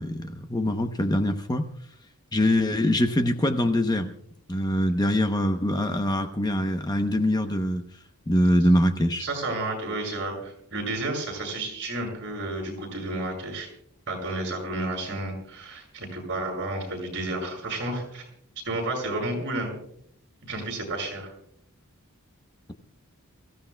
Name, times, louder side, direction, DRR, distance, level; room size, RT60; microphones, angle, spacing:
voice 1, 0.0-1.7 2.3-4.1 4.5-7.8 8.3-9.3, left 1 dB, 20° left, 6 dB, 0.8 m, -23 dB
voice 2, 9.2-13.7 14.1-18.2 18.6-19.7 20.4-21.3, right 2 dB, 55° right, 1 dB, 6.9 m, -31 dB
28.5 x 15.5 x 2.2 m, 0.68 s
head